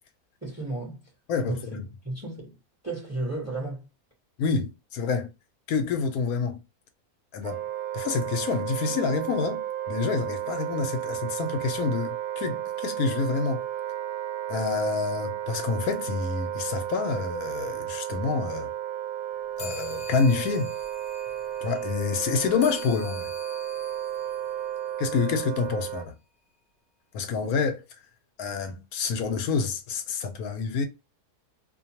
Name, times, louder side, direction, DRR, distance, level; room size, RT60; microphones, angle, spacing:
voice 1, 0.4-1.0 1.4-1.6 2.0-2.6 2.8-3.9, right 2 dB, 15° right, 0.8 m, -33 dB
voice 2, 1.3-1.8 4.4-5.3 5.7-6.6 7.3-7.6 7.9-9.6 9.9-13.6 14.5-18.7 19.6-20.7 21.6-23.3 25.0-26.1 27.1-27.8 28.4-30.9, left 5 dB, 80° left, 1.1 m, -27 dB
Wind instrument woodwind instrument, 7.4-26.1, right 11 dB, 70° right, 0.9 m, -33 dB
sound 1, 19.6-25.4, left 5 dB, 45° left, 0.6 m, -45 dB
2.6 x 2.2 x 2.8 m
omnidirectional pair, 1.6 m